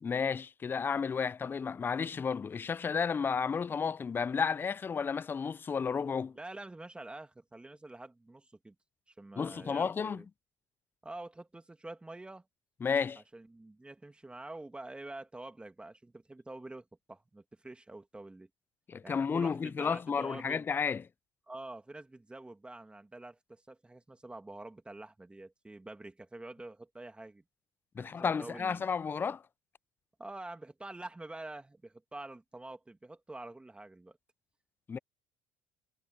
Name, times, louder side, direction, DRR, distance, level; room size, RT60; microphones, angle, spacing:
voice 1, 0.0-6.4 9.4-10.2 12.8-13.2 18.9-21.0 28.0-29.4 34.9-35.0, left 6 dB, 25° left, 0.4 m, -32 dB
voice 2, 6.3-8.7 9.2-10.2 11.0-12.5 13.3-18.5 19.0-20.7 21.5-27.4 28.0-28.9 30.2-34.2, right 2 dB, 10° right, 2.4 m, -47 dB
supercardioid pair, 80°, 8 cm